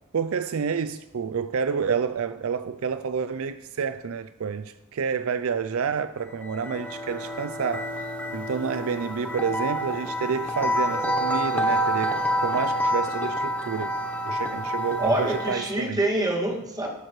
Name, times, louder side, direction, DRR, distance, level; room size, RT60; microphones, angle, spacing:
voice 1, 0.1-13.9 14.2-16.0, right 6 dB, 65° right, 0.4 m, -29 dB
sound 1, 6.3-15.8, equal, 5° left, 0.8 m, -28 dB
voice 2, 15.0-16.9, right 1 dB, 15° right, 2.1 m, -25 dB
19.0 x 8.8 x 3.2 m
head